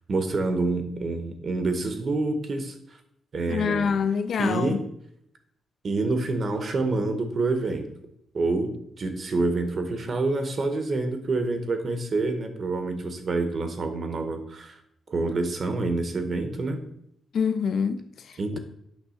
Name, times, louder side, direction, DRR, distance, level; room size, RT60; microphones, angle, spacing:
voice 1, 0.1-2.8 3.3-3.9 4.4-4.8 5.8-7.9 8.3-14.8 15.1-16.8 18.4-18.6, right 3 dB, 40° right, 1.0 m, -27 dB
voice 2, 3.5-4.8 17.3-18.6, left 6 dB, 55° left, 0.4 m, -26 dB
8.7 x 3.5 x 6.3 m
cardioid pair, 145°, 0 cm